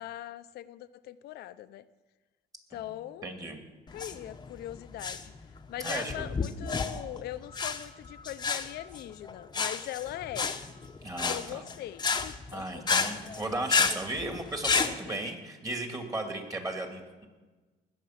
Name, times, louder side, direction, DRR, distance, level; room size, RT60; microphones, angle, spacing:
voice 1, 0.0-1.8 2.7-3.4 3.9-5.3 5.7-10.5 11.2-12.8 15.1-15.2, left 13 dB, 70° left, 13 dB, 0.7 m, -41 dB
voice 2, 2.7-3.6 5.8-6.3 11.0-11.6 12.5-17.3, right 2 dB, 20° right, 4 dB, 2.4 m, -36 dB
sound 1, 3.9-14.9, left 5 dB, 25° left, 0.9 m, -31 dB
20.0 x 7.5 x 5.9 m, 1.3 s
cardioid pair, 110°, 17 cm